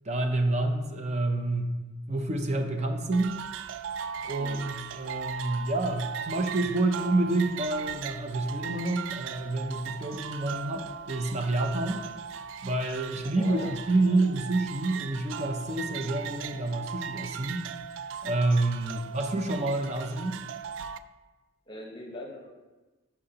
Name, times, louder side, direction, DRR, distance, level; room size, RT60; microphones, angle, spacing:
voice 1, 0.0-1.7 2.1-3.4 4.3-12.0 12.6-17.7 18.2-20.4, right 2 dB, 35° right, 4 dB, 0.6 m, -28 dB
sound 1, 3.1-21.0, right 7 dB, 75° right, 0.3 m, -38 dB
voice 2, 13.4-13.7 14.1-14.2 18.8-19.1 21.7-22.5, left 1 dB, 25° left, 1 dB, 1.1 m, -41 dB
11.5 x 5.7 x 2.9 m, 1.2 s
head